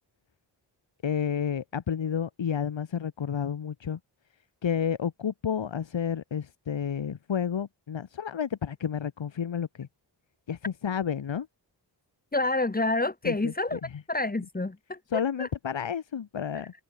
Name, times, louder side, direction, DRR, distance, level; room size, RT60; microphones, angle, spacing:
voice 1, 1.0-4.0 4.6-9.9 10.5-11.5 13.2-14.0 15.1-16.7, left 7 dB, 90° left, 4.7 m, -31 dB
voice 2, 12.3-13.8 14.1-15.0 15.4-15.5, left 2 dB, 20° left, 4.6 m, -28 dB
wide cardioid pair, 160°, 44 cm